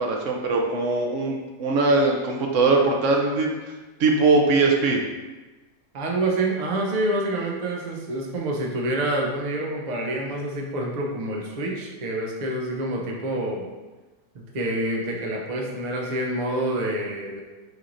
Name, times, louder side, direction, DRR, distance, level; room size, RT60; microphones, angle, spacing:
voice 1, 0.0-3.6 4.0-5.0, right 3 dB, 65° right, 1 dB, 0.8 m, -21 dB
voice 2, 5.9-13.7 14.3-17.4, right 1 dB, 85° right, -1 dB, 0.3 m, -27 dB
6.3 x 3.1 x 2.5 m, 1.2 s
omnidirectional pair, 1.8 m